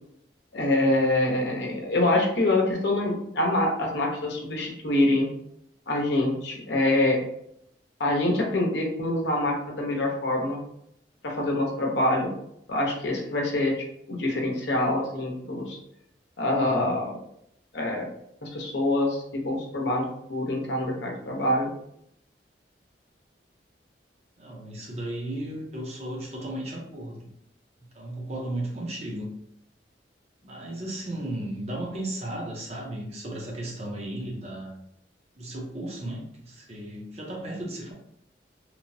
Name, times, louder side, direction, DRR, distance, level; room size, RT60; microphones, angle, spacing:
voice 1, 0.5-5.3 5.9-7.2 8.0-10.6 11.2-12.3 12.7-13.7 14.1-15.8 16.4-17.2 17.7-18.1 18.4-21.7, left 1 dB, 80° left, 0 dB, 0.7 m, -25 dB
voice 2, 24.4-27.3 27.9-29.3 30.4-34.8 35.4-37.9, right 1 dB, 40° right, -2 dB, 0.7 m, -35 dB
3.0 x 2.0 x 2.6 m, 0.74 s
head